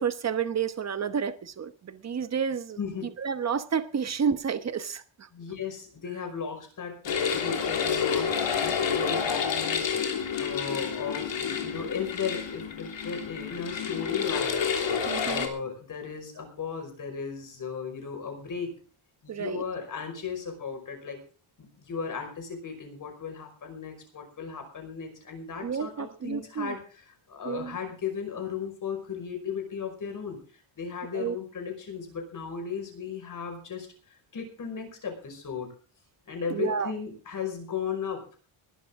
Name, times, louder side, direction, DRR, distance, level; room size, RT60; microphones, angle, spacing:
voice 1, 0.0-2.8 3.2-5.3 15.1-15.5 19.3-19.6 25.6-26.7 27.4-27.8 31.1-31.4 36.5-36.9, right 7 dB, 30° right, 1.1 m, -30 dB
voice 2, 2.8-3.1 5.3-14.6 15.2-18.7 19.2-21.2 21.6-26.8 27.3-30.4 30.8-35.7 36.3-38.4, left 6 dB, 40° left, 5.4 m, -36 dB
sound 1, 7.1-15.5, left 6 dB, 60° left, 3.3 m, -29 dB
21.0 x 12.0 x 3.7 m
wide cardioid pair, 180°, 50 cm